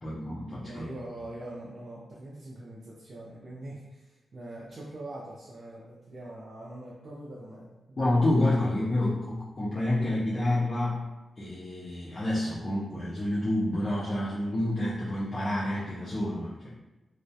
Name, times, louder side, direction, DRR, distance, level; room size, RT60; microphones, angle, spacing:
voice 1, 0.0-0.8 8.0-11.0 11.4-16.8, left 1 dB, 30° left, -9 dB, 0.4 m, -28 dB
voice 2, 0.6-8.2, right 1 dB, 40° right, -7 dB, 0.4 m, -43 dB
2.3 x 2.1 x 2.6 m, 1.0 s
wide cardioid pair, 155°, 0 cm